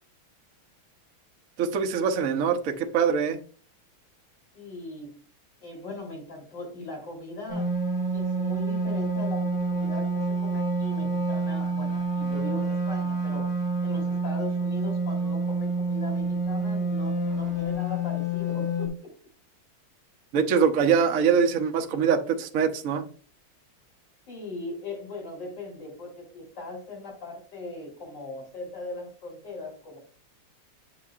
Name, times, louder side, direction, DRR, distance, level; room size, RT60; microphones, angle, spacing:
voice 1, 1.6-3.4 20.3-23.1, right 6 dB, 55° right, 1.0 m, -23 dB
voice 2, 4.5-5.2 5.6-7.7 8.1-19.1 24.3-30.0, left 2 dB, 55° left, 4.1 m, -39 dB
sound 1, 7.5-18.9, right 2 dB, 5° left, 2.1 m, -28 dB
9.5 x 6.6 x 2.4 m
omnidirectional pair, 2.3 m